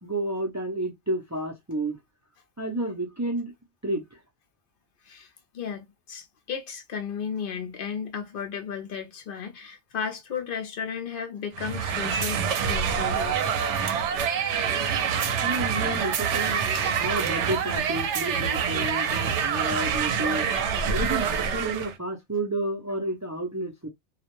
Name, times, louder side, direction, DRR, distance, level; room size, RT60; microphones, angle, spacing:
voice 1, 0.0-2.0 2.6-3.5 3.8-4.2 15.4-16.7 17.0-20.5 20.8-23.9, right 1 dB, 20° right, 0.4 m, -31 dB
voice 2, 5.5-13.6, left 7 dB, 60° left, 0.7 m, -34 dB
sound 1, 11.5-21.9, right 7 dB, 85° right, 0.9 m, -26 dB
2.3 x 2.1 x 2.9 m
omnidirectional pair, 1.2 m